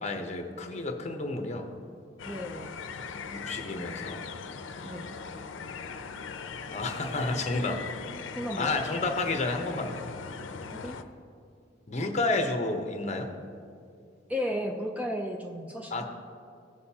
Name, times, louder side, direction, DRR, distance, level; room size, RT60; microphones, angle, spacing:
voice 1, 0.0-1.7 3.3-4.2 6.7-7.8 8.6-10.0 11.9-13.3 15.9-16.0, left 2 dB, 35° left, 4 dB, 0.9 m, -30 dB
sound 1, 2.2-11.0, left 5 dB, 85° left, 0.5 m, -40 dB
voice 2, 2.2-2.7 4.8-5.1 8.4-8.7 10.7-11.0 14.3-16.0, equal, 5° right, 2 dB, 0.4 m, -34 dB
16.5 x 6.5 x 2.8 m, 2.4 s
head